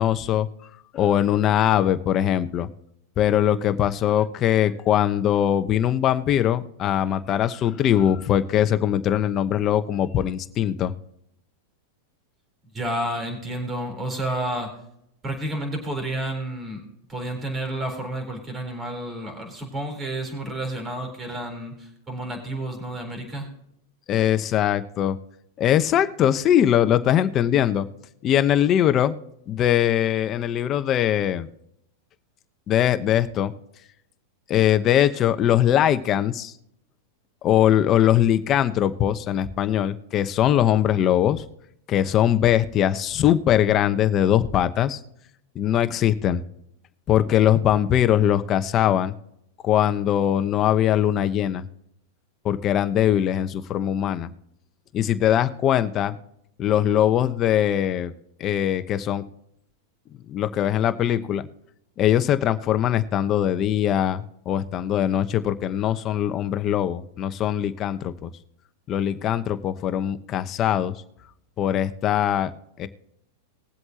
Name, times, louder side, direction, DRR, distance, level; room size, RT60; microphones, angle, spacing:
voice 1, 0.0-2.7 3.2-10.9 24.1-25.2 25.6-27.9 28.2-29.2 29.5-31.5 32.7-33.5 34.5-36.5 37.4-41.4 41.9-45.0 45.5-46.4 47.1-49.1 49.6-51.7 52.4-54.3 54.9-56.2 56.6-58.1 58.4-59.2 60.3-61.4 62.0-68.3 68.9-71.0 71.6-72.5 72.8-72.9, left 10 dB, 35° left, 11 dB, 1.0 m, -21 dB
voice 2, 12.7-14.7 15.2-16.8 17.1-23.5, right 1 dB, 20° right, 3 dB, 4.0 m, -30 dB
20.5 x 7.8 x 3.0 m, 0.76 s
hypercardioid pair, 120°, 0 cm